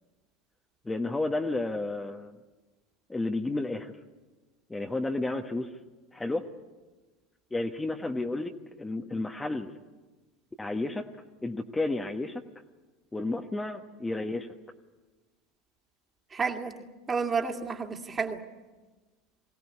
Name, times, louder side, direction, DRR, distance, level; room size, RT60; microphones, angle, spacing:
voice 1, 0.8-2.3 3.1-3.9 4.7-5.7 6.1-6.5 7.5-9.7 10.6-11.1 11.4-12.4 13.1-14.5, left 2 dB, 15° left, 4 dB, 1.3 m, -31 dB
voice 2, 16.3-18.4, right 5 dB, 25° right, 3 dB, 2.5 m, -31 dB
22.0 x 17.5 x 9.8 m, 1.2 s
hypercardioid pair, 80°, 0 cm